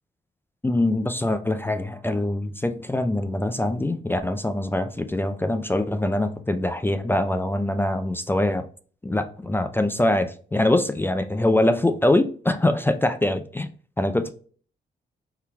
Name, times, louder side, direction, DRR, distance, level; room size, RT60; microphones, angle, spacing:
voice 1, 0.6-8.7 9.0-13.7 14.0-14.3, left 1 dB, 10° left, 0.4 m, -23 dB
4.3 x 3.8 x 2.2 m
supercardioid pair, 65°, 18 cm